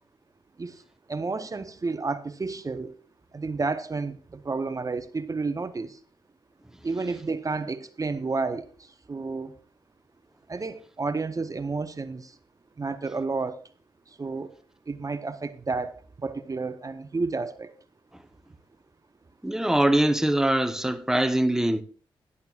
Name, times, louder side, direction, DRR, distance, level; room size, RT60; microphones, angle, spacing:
voice 1, 1.1-3.0 3.3-6.0 6.8-9.5 10.5-12.4 12.8-13.6 14.1-14.5 14.9-17.7, right 3 dB, 35° right, 0.8 m, -31 dB
voice 2, 19.4-21.8, right 1 dB, 5° right, 1.0 m, -23 dB
15.5 x 11.0 x 2.4 m
cardioid pair, 55°, 10 cm